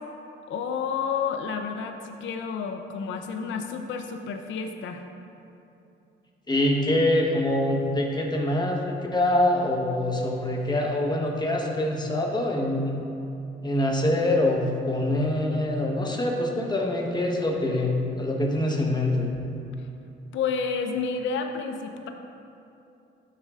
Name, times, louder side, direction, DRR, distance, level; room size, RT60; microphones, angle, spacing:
voice 1, 0.5-5.0 20.3-22.1, left 5 dB, 75° left, 5 dB, 0.6 m, -30 dB
voice 2, 6.5-13.0 13.6-19.3, left 1 dB, 20° left, 0 dB, 1.2 m, -25 dB
12.5 x 6.6 x 2.5 m, 2.7 s
cardioid pair, 90°, 20 cm